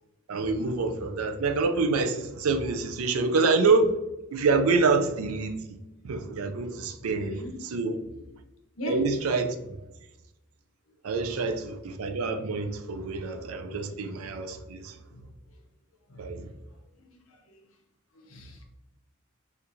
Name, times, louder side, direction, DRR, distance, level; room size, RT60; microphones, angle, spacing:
voice 1, 0.3-4.0 4.3-5.6 6.0-7.4 7.7-8.0 8.9-9.6 11.0-14.9 16.2-16.5, right 3 dB, 90° right, 0.4 m, -26 dB
voice 2, 7.0-7.5 8.0-8.3 8.8-9.0 11.4-11.5 13.1-13.2 15.1-15.3 16.1-16.6 16.9-17.6 18.1-18.6, equal, 70° left, 0.8 m, -41 dB
4.3 x 2.5 x 2.7 m
head